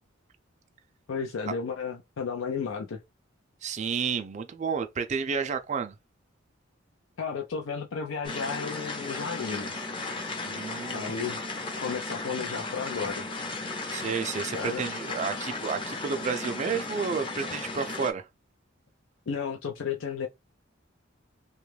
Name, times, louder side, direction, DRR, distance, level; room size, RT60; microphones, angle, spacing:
voice 1, 1.1-3.0 7.2-9.7 10.9-11.4 11.8-13.3 14.5-14.9 19.3-20.3, left 6 dB, 75° left, 0.5 m, -33 dB
voice 2, 3.6-6.0 10.4-11.3 13.9-18.3, right 6 dB, 35° right, 0.4 m, -31 dB
sound 1, 8.2-18.1, left 3 dB, 25° left, 0.6 m, -35 dB
2.9 x 2.3 x 3.2 m
head